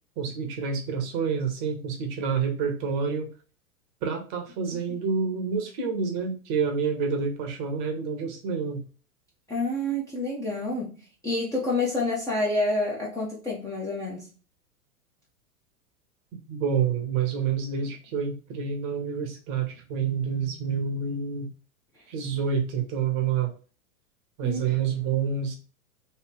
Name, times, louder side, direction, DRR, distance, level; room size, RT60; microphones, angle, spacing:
voice 1, 0.2-3.3 4.0-8.8 16.5-21.5 22.1-23.5 24.4-25.5, right 6 dB, 30° right, 0.7 m, -28 dB
voice 2, 9.5-10.9 11.2-14.3 24.4-24.6, left 2 dB, 5° left, 0.5 m, -28 dB
3.2 x 2.7 x 3.2 m
figure-of-eight pair, 100°, 44 cm